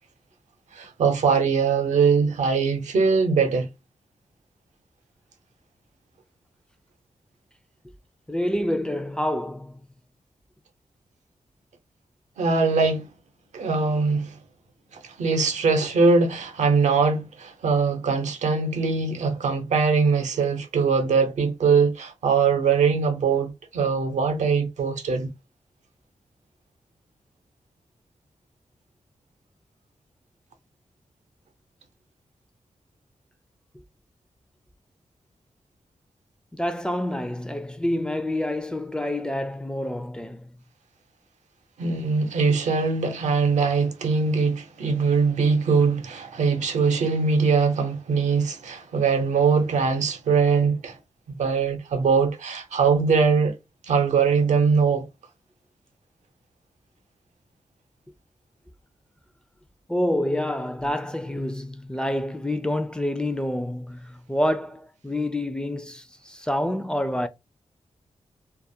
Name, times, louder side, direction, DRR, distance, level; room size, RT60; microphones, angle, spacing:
voice 1, 0.7-3.7 12.4-13.1 13.5-14.4 14.9-25.3 41.8-51.0 51.3-53.5 53.9-55.1, right 5 dB, 90° right, 0.6 m, -22 dB
voice 2, 8.3-9.8 36.5-40.5 59.9-67.3, left 1 dB, 5° left, 0.4 m, -27 dB
2.4 x 2.1 x 2.7 m
cardioid pair, 65°, 12 cm